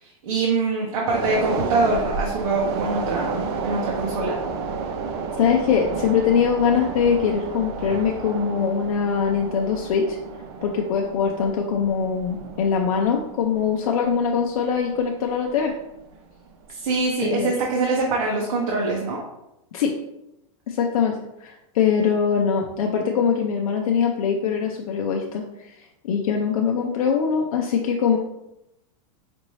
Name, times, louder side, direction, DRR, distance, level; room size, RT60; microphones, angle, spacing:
voice 1, 0.0-4.3 16.7-19.2, right 3 dB, 70° right, -2 dB, 0.9 m, -24 dB
sound 1, 1.1-15.7 16.0-16.2, right 4 dB, 50° right, 0.6 m, -31 dB
voice 2, 5.3-10.2 10.6-15.7 17.2-17.5 19.7-19.9 20.7-25.8 26.0-28.2, left 6 dB, 85° left, 1 dB, 0.6 m, -22 dB
5.1 x 2.6 x 3.1 m, 0.88 s
supercardioid pair, 160°, 18 cm